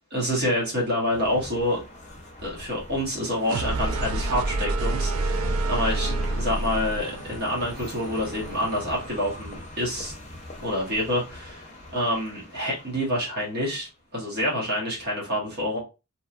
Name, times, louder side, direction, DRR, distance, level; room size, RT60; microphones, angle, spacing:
voice 1, 0.1-1.8 2.4-10.1 10.6-15.8, left 1 dB, 50° right, 1.0 m, -27 dB
sound 1, 1.1-14.0, left 1 dB, 30° left, 0.7 m, -42 dB
sound 2, 3.4-9.2, right 2 dB, 65° right, 0.4 m, -29 dB
2.8 x 2.3 x 2.4 m
head